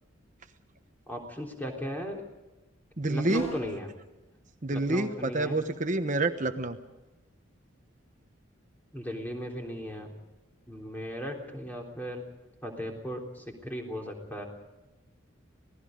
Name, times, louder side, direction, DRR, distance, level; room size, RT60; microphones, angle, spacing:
voice 1, 1.1-2.2 3.1-3.9 4.7-5.6 8.9-10.2 10.7-12.2 12.6-14.4, equal, 10° left, 1 dB, 3.4 m, -36 dB
voice 2, 3.0-3.4 4.6-6.8, right 2 dB, 35° right, 8 dB, 1.2 m, -28 dB
sound 1, 3.3-3.8, equal, 30° left, 7.7 m, -43 dB
26.5 x 18.5 x 5.3 m, 1.1 s
head